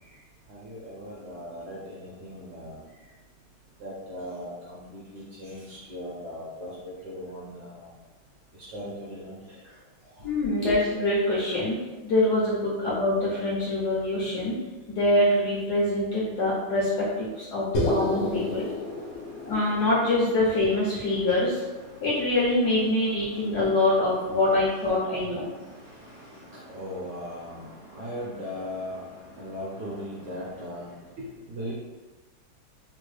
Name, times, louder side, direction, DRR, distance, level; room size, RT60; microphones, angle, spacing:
voice 1, 0.5-2.8 3.8-7.9 8.7-9.5 10.6-10.9 18.4-19.7 20.1-20.8 21.0-22.4 22.7-23.7 24.1-24.5 24.8-30.9 31.2-31.7, equal, 65° right, -6 dB, 1.0 m, -39 dB
voice 2, 10.2-11.8 12.0-14.5 14.9-18.7 19.4-21.6 22.0-25.4, left 1 dB, 65° left, -7 dB, 1.0 m, -24 dB
sound 1, 17.7-22.1, left 1 dB, 85° left, 0.6 m, -31 dB
3.6 x 2.2 x 3.2 m, 1.2 s
omnidirectional pair, 2.4 m